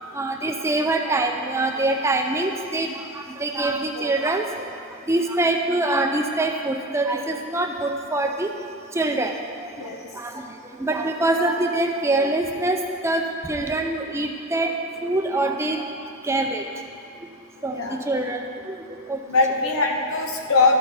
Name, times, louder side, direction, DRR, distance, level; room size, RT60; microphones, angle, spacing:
voice 1, 0.1-4.5 5.1-8.5 8.9-9.3 9.6-9.7 10.1-10.4 10.8-14.8 15.0-15.8 16.2-16.6 17.6-18.8 19.1-19.2, right 2 dB, 15° right, 3 dB, 0.4 m, -24 dB
voice 2, 9.8-10.1 17.7-18.0 19.3-20.8, left 3 dB, 80° left, 2 dB, 1.0 m, -21 dB
13.0 x 4.4 x 5.3 m, 2.5 s
head